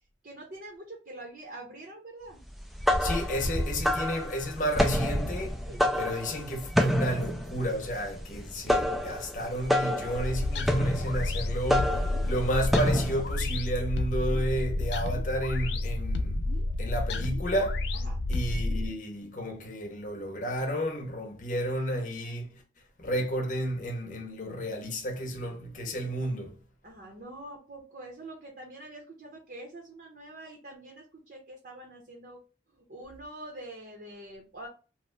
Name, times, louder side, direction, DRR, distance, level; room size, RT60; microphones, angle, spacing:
voice 1, 0.2-2.4 5.7-5.9 17.9-18.2 26.8-32.4 32.7-34.7, right 1 dB, 55° right, 0.7 m, -45 dB
sound 1, 2.6-13.4, equal, ahead, 0.3 m, -28 dB
voice 2, 3.0-5.6 5.9-16.4 16.8-17.8 18.3-22.6 23.0-26.6, equal, 45° left, 0.7 m, -32 dB
sound 2, 10.1-18.9, left 2 dB, 75° left, 0.4 m, -30 dB
2.9 x 2.0 x 3.2 m
head